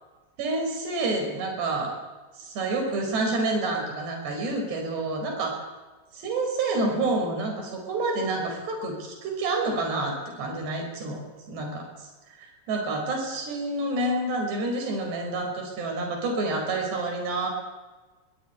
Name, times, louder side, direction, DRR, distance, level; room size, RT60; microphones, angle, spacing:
voice 1, 0.4-1.9 2.4-5.6 6.2-11.2 11.5-17.5, right 2 dB, 85° right, 1 dB, 7.1 m, -28 dB
24.0 x 20.5 x 9.7 m, 1.2 s
omnidirectional pair, 4.7 m